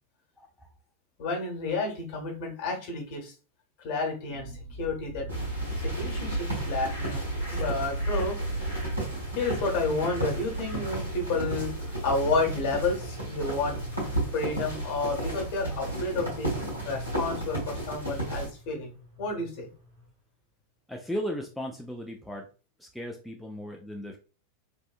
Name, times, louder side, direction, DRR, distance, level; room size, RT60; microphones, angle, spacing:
voice 1, 0.4-0.7 20.9-22.5 22.8-24.2, equal, ahead, 1 dB, 0.4 m, -36 dB
voice 2, 1.2-3.3 3.8-5.3 5.8-7.2 7.5-8.4 9.3-14.0 14.3-16.5 16.8-18.9 19.2-19.7, left 3 dB, 45° left, 1 dB, 1.2 m, -31 dB
sound 1, 4.3-20.1, equal, 65° right, 1.0 m, -46 dB
sound 2, 5.3-18.5, right 1 dB, 90° right, 1.5 m, -32 dB
3.3 x 2.6 x 2.4 m, 0.35 s
figure-of-eight pair, 90°, 0 cm